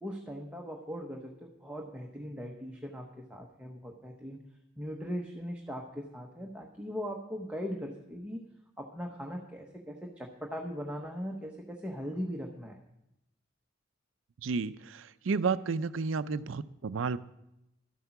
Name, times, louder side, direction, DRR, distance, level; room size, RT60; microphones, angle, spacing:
voice 1, 0.0-4.4 4.8-8.4 8.8-12.8, equal, 5° right, 0 dB, 0.8 m, -39 dB
voice 2, 14.4-17.2, right 5 dB, 80° right, 15 dB, 0.5 m, -32 dB
12.5 x 8.1 x 5.8 m, 0.85 s
head